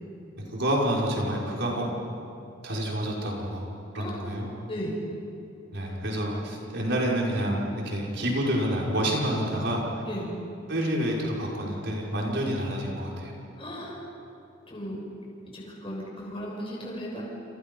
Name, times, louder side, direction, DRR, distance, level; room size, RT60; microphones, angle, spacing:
voice 1, 0.5-1.9 2.6-3.6 3.9-4.5 5.7-9.8 10.7-13.3, equal, 60° right, -3 dB, 5.7 m, -28 dB
voice 2, 4.7-5.0 10.1-10.3 13.6-14.0 14.7-15.0 15.5-17.2, equal, 25° left, -3 dB, 7.1 m, -36 dB
28.5 x 28.5 x 5.6 m, 2.7 s
head